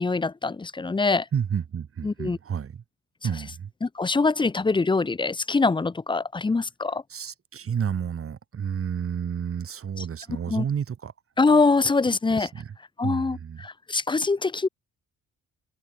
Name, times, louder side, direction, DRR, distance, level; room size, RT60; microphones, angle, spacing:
voice 1, 0.0-1.2 2.0-2.4 3.8-7.0 10.5-10.6 11.4-12.5 13.0-14.7, left 3 dB, 15° left, 0.7 m, -23 dB
voice 2, 1.3-2.8 3.2-3.7 7.1-11.1 12.3-12.8 13.0-13.7, right 7 dB, 45° right, 2.6 m, -31 dB
cardioid pair, 90°, 30 cm